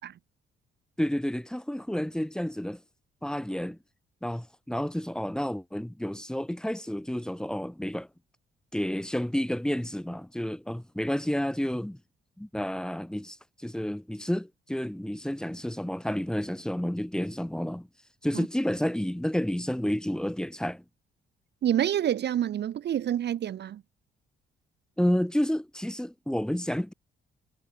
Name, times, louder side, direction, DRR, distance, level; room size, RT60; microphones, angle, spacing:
voice 1, 1.0-2.8 3.2-3.8 4.2-8.1 8.7-12.0 12.4-17.9 18.2-20.8 25.0-26.9, equal, 5° left, 1.8 m, -30 dB
voice 2, 21.6-23.8, right 10 dB, 60° right, 0.9 m, -27 dB
cardioid pair, 90°, 20 cm